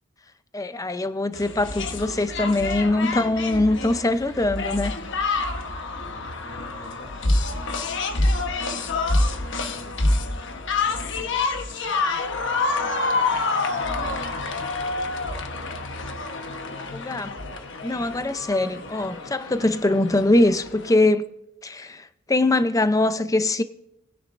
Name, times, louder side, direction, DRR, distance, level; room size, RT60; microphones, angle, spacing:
voice 1, 0.5-5.0 16.9-17.4 17.8-21.2 21.6-23.6, left 2 dB, 15° left, 0.6 m, -22 dB
sound 1, 1.3-20.9, left 3 dB, 65° left, 1.1 m, -27 dB
voice 2, 5.9-8.3 8.7-9.3 9.6-13.8 17.9-18.2, left 1 dB, 45° left, 3.7 m, -50 dB
20.5 x 9.9 x 2.6 m
head